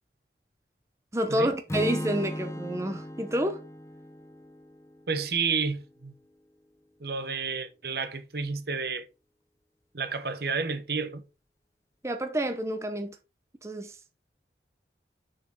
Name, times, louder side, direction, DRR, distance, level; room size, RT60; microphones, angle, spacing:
voice 1, 1.1-3.6 12.0-13.2 13.6-14.0, equal, 15° right, 0.8 m, -29 dB
Strum, 1.7-5.9, equal, 15° left, 0.5 m, -37 dB
voice 2, 5.1-6.1 7.0-9.1 9.9-11.2, right 5 dB, 60° right, 1.0 m, -30 dB
6.5 x 6.3 x 3.7 m
head